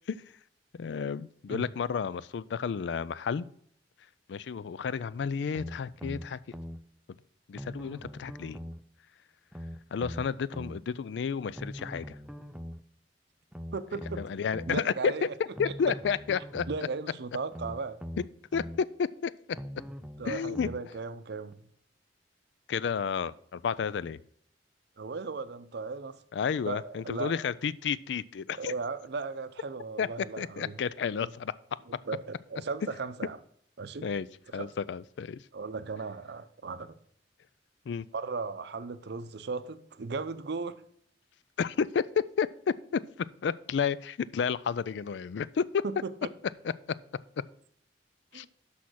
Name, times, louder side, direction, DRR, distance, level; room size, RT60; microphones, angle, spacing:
voice 1, 0.8-3.5 4.3-6.4 7.5-8.6 9.9-12.2 14.2-15.1 15.6-16.7 18.5-19.3 20.3-20.7 22.7-24.2 26.3-28.7 30.0-30.1 30.4-31.5 34.0-34.3 34.5-35.4 37.9-38.1 41.6-43.0 43.4-45.8 48.3-48.4, left 6 dB, 70° left, 18 dB, 0.4 m, -31 dB
sound 1, 5.5-6.8 7.6-8.8 9.5-10.8 11.6-12.8 13.5-14.8 15.6-16.8 17.5-18.8 19.6-20.8 21.5-21.6, equal, 5° right, 0.4 m, -41 dB
voice 2, 13.7-14.2 14.7-15.3 15.6-15.7 16.7-18.0 20.2-21.6 25.0-26.2 26.6-27.3 28.5-30.8 31.9-33.4 33.8-34.1 34.5-34.7 35.5-37.0 38.1-40.8 45.8-46.3 48.3-48.5, right 4 dB, 65° right, 12 dB, 0.6 m, -36 dB
6.3 x 5.7 x 6.2 m, 0.65 s
head